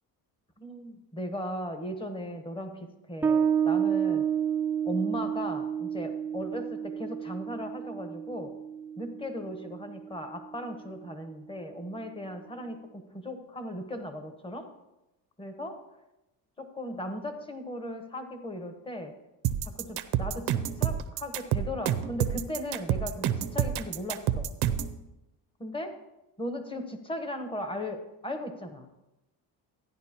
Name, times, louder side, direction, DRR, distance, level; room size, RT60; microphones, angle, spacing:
voice 1, 0.6-4.2 4.8-8.5 9.0-14.7 15.4-15.8 16.6-19.1 19.6-24.5 25.6-25.9 26.4-29.0, left 1 dB, 15° left, 6 dB, 1.1 m, -37 dB
Bass guitar, 3.2-10.4, right 8 dB, 5° right, 0.4 m, -30 dB
sound 1, 19.4-25.0, right 10 dB, 80° right, 0.7 m, -28 dB
13.0 x 10.0 x 2.9 m, 0.94 s
cardioid pair, 130°, 38 cm